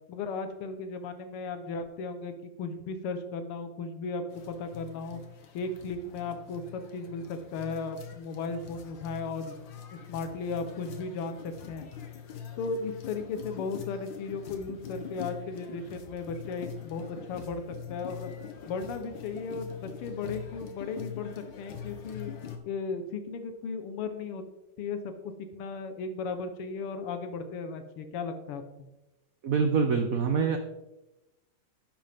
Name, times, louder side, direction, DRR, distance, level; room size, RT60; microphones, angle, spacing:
voice 1, 0.1-5.2 5.5-9.6 9.9-11.8 12.6-17.6 17.9-18.4 18.7-22.3 22.7-24.5 24.8-28.9, left 4 dB, 85° left, 8 dB, 1.9 m, -36 dB
sound 1, 4.3-22.6, left 8 dB, 60° left, 1.8 m, -44 dB
voice 2, 29.4-30.6, right 5 dB, 60° right, 6 dB, 0.9 m, -25 dB
11.0 x 9.1 x 3.5 m, 0.96 s
omnidirectional pair, 2.4 m